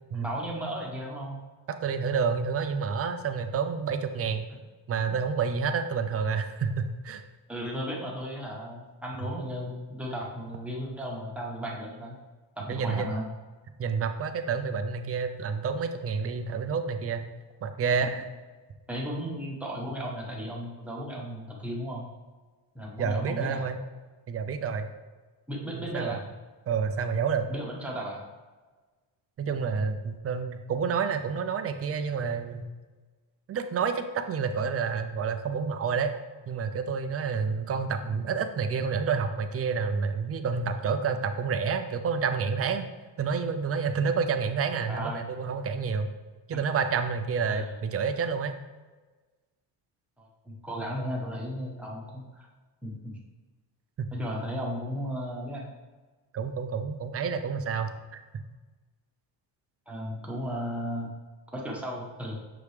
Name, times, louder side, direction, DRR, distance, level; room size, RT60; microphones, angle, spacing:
voice 1, 0.1-1.4 7.5-12.2 12.6-13.2 18.9-22.1 22.7-23.6 25.5-26.2 27.5-28.2 44.9-45.3 47.5-47.7 50.2-52.5 52.8-53.2 54.1-55.7 59.9-61.1 61.5-62.4, equal, 5° right, -3 dB, 1.1 m, -35 dB
voice 2, 1.7-4.5 4.9-7.2 12.7-13.1 13.8-17.3 17.6-18.3 23.0-23.8 24.3-24.9 25.7-26.2 26.7-27.5 29.4-32.7 33.5-36.1 36.5-42.9 43.2-46.1 46.5-48.5 54.0-54.1 56.3-58.2, right 5 dB, 35° right, 8 dB, 0.4 m, -29 dB
6.9 x 5.1 x 3.2 m, 1.3 s
cardioid pair, 160°, 47 cm